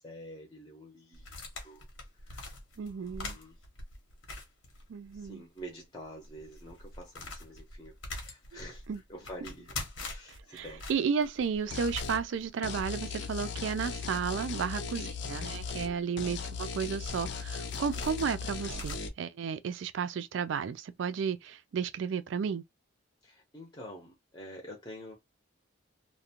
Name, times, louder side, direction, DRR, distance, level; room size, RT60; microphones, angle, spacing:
voice 1, 0.0-1.9 2.2-2.6 2.9-3.6 5.1-8.8 9.1-10.9 14.5-15.1 23.2-25.1, equal, 20° left, 0.6 m, -48 dB
sound 1, 1.1-5.3 5.6-5.7 6.2-19.0, left 2 dB, 80° left, 0.9 m, -45 dB
voice 2, 2.8-3.4 4.9-5.4 8.9-9.0 10.5-22.6, right 6 dB, 70° right, 0.3 m, -33 dB
sound 2, 11.7-12.2 12.6-15.9 16.2-19.1, left 5 dB, 65° left, 0.5 m, -38 dB
2.5 x 2.1 x 2.8 m
head